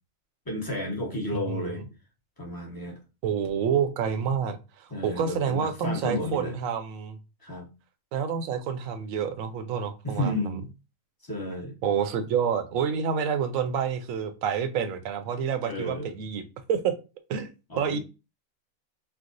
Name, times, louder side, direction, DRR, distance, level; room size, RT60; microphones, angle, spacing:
voice 1, 0.5-1.8 2.4-3.0 4.9-6.6 7.4-7.7 10.0-10.7 11.2-11.7 15.6-16.1 17.7-18.0, left 1 dB, 20° left, 0.7 m, -32 dB
voice 2, 3.2-7.2 8.1-10.3 11.8-16.4 16.7-16.9 17.3-17.5 17.8-18.0, right 7 dB, 75° right, 1.0 m, -28 dB
4.6 x 2.1 x 2.5 m
omnidirectional pair, 1.4 m